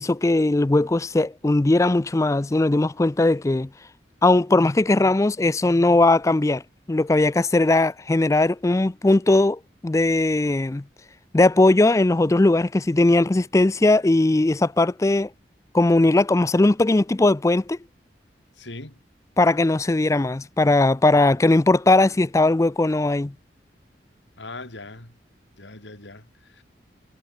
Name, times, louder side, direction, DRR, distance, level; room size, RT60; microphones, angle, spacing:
voice 1, 0.0-3.7 4.2-6.6 6.9-10.8 11.3-15.3 15.7-17.8 19.4-23.3, left 2 dB, 15° left, 0.4 m, -19 dB
voice 2, 18.6-19.0 24.4-25.2 25.6-26.6, left 2 dB, 80° left, 4.0 m, -40 dB
head